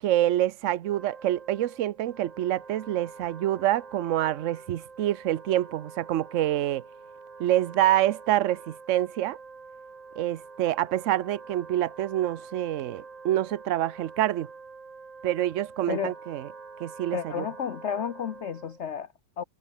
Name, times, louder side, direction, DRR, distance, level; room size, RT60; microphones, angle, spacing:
voice 1, 0.0-6.8 7.4-9.4 10.2-14.5 15.2-16.4 16.8-17.4, right 13 dB, 75° right, 0.7 m, -26 dB
Wind instrument woodwind instrument, 0.8-18.9, right 4 dB, 25° right, 0.9 m, -46 dB
voice 2, 17.1-19.4, left 8 dB, 80° left, 0.6 m, -32 dB
omnidirectional pair, 2.1 m